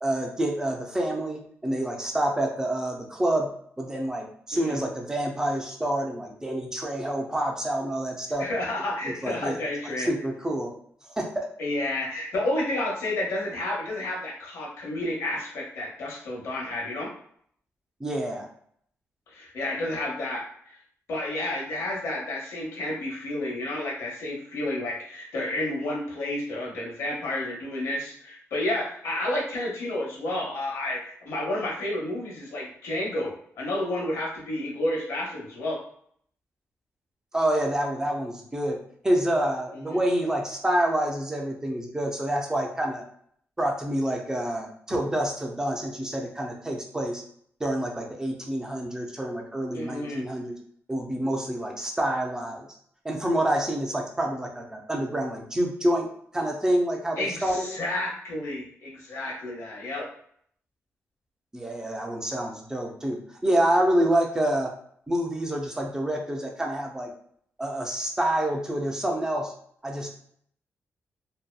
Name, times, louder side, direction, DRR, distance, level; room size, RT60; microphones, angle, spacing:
voice 1, 0.0-3.5 3.8-8.5 9.0-9.6 10.0-10.7 11.1-11.5 18.0-18.5 37.3-38.8 39.0-43.0 43.6-47.2 47.6-50.5 50.9-52.7 53.0-57.7 61.5-64.7 65.1-67.1 67.6-69.5 69.8-70.1, right 1 dB, 10° right, 1 dB, 0.4 m, -27 dB
voice 2, 8.4-10.1 11.6-17.1 19.3-20.8 21.1-35.8 39.9-40.0 49.7-50.2 57.2-60.1, left 1 dB, 90° left, -2 dB, 0.9 m, -31 dB
2.7 x 2.2 x 2.2 m, 0.63 s
wide cardioid pair, 150°, 5 cm